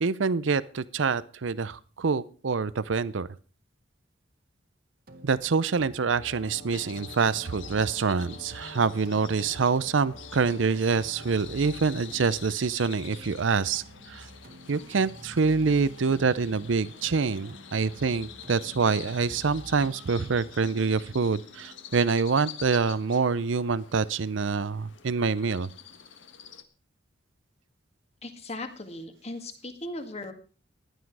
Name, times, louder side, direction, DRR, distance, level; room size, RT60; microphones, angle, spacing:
voice 1, 0.0-3.3 5.2-14.3 14.7-25.7, right 5 dB, 80° right, 18 dB, 0.6 m, -26 dB
sound 1, 5.1-23.0, right 1 dB, 50° right, 1.6 m, -49 dB
Brass instrument, 6.0-12.0, left 1 dB, 50° left, 2.1 m, -50 dB
sound 2, 6.7-26.6, left 8 dB, 80° left, 1.5 m, -47 dB
voice 2, 28.2-30.3, left 2 dB, 35° left, 7 dB, 1.9 m, -38 dB
15.5 x 11.0 x 4.7 m, 0.37 s
head